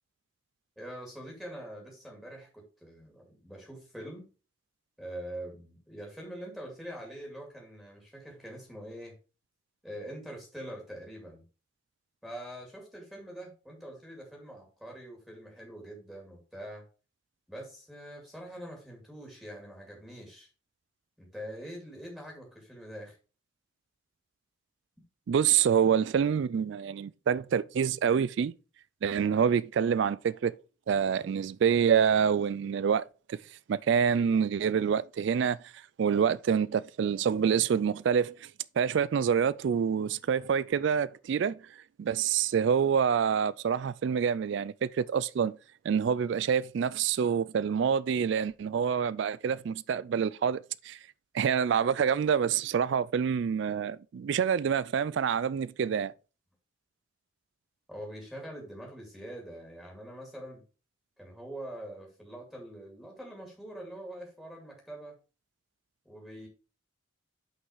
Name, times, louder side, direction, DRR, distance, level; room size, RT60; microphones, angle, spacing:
voice 1, 0.8-4.3 5.0-9.2 9.8-11.4 12.2-16.8 17.5-20.5 21.2-23.1 57.9-60.6 61.2-65.1 66.0-66.5, right 1 dB, ahead, 2.3 m, -44 dB
voice 2, 25.3-28.5 29.0-30.5 30.9-33.4 33.7-35.6 36.0-38.5 38.8-41.6 42.0-45.6 45.8-51.0 51.3-56.1, right 7 dB, 60° right, 0.3 m, -27 dB
5.8 x 5.4 x 4.7 m
head